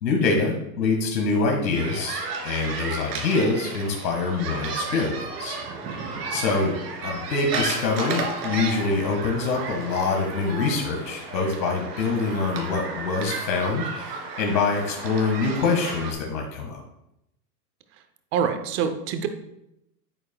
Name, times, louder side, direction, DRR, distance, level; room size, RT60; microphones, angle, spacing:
voice 1, 0.0-5.6 6.3-6.8 7.0-16.8, left 4 dB, 85° left, 1 dB, 1.8 m, -25 dB
sound 1, 1.7-16.1, right 4 dB, 75° right, 2.7 m, -33 dB
voice 2, 18.3-19.3, right 7 dB, 25° right, 8 dB, 0.6 m, -25 dB
9.6 x 8.6 x 2.3 m, 0.83 s
hypercardioid pair, 130°, 50 cm